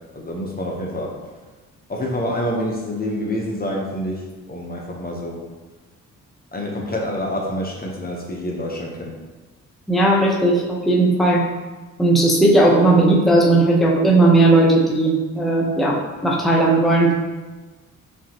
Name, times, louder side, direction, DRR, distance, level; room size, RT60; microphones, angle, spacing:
voice 1, 0.1-1.1 1.9-5.4 6.5-9.1, equal, 25° left, -2 dB, 0.9 m, -27 dB
voice 2, 9.9-11.4 12.0-17.1, right 2 dB, ahead, -4 dB, 0.8 m, -16 dB
5.4 x 2.9 x 2.9 m, 1.3 s
cardioid pair, 70°, 34 cm